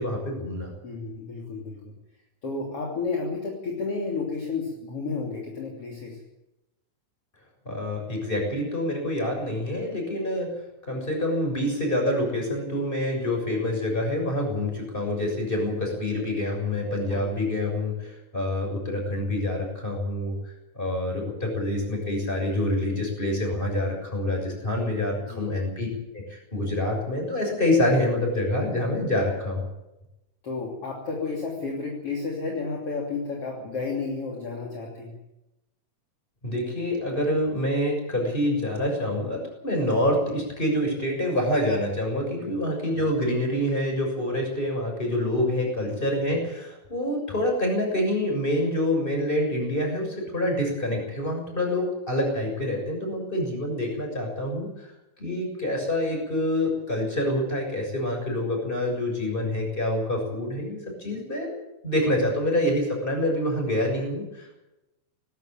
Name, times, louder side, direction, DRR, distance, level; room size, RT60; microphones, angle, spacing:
voice 1, 0.0-0.7 7.7-10.5 10.9-20.4 20.8-25.9 26.1-29.7 36.4-54.9 55.2-61.5 61.8-64.5, left 1 dB, 15° left, 2 dB, 6.9 m, -26 dB
voice 2, 0.8-2.0 2.4-6.2 17.0-17.3 25.2-25.5 30.4-35.2 42.4-42.5 45.8-46.0, left 4 dB, 45° left, -1 dB, 3.8 m, -32 dB
19.0 x 16.0 x 8.9 m, 0.94 s
omnidirectional pair, 3.9 m